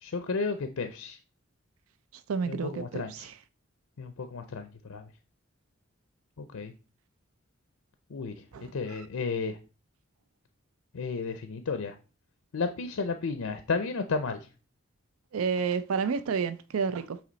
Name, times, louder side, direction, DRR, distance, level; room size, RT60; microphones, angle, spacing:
voice 1, 0.0-1.2 2.5-3.3 4.0-5.0 6.4-6.7 8.1-8.4 8.7-9.6 10.9-12.0 12.5-14.4, left 4 dB, 90° left, 0.6 m, -32 dB
voice 2, 2.1-3.4 8.5-9.1 15.3-17.2, right 5 dB, 85° right, 0.4 m, -31 dB
8.5 x 3.0 x 4.0 m
head